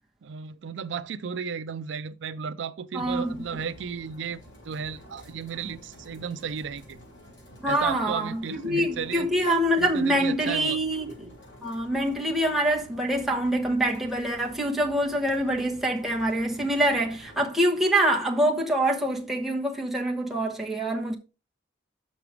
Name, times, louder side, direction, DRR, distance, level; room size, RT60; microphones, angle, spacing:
voice 1, 0.2-7.0 7.7-9.3 9.8-10.8, right 6 dB, 80° right, 0.4 m, -34 dB
voice 2, 2.9-3.4 7.6-11.3 11.6-21.2, right 1 dB, ahead, 1.1 m, -25 dB
sound 1, 3.0-17.4, equal, 80° left, 4.3 m, -50 dB
6.3 x 5.8 x 4.8 m
head